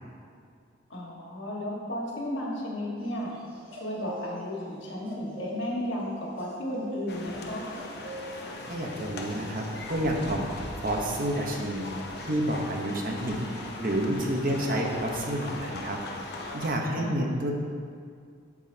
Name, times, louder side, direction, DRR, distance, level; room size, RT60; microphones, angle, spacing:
voice 1, 0.9-3.3 3.8-7.7 16.9-17.1, left 1 dB, 70° left, -3 dB, 1.6 m, -34 dB
sound 1, 3.0-4.7 5.0-8.9, right 1 dB, 25° right, 1.3 m, -42 dB
sound 2, 7.1-16.7, left 2 dB, 55° left, 0.7 m, -39 dB
voice 2, 8.7-10.5 10.8-11.9 12.2-13.5 13.8-16.0 16.5-17.5, right 1 dB, 45° right, 0 dB, 0.9 m, -29 dB
9.1 x 7.2 x 2.8 m, 2.2 s
head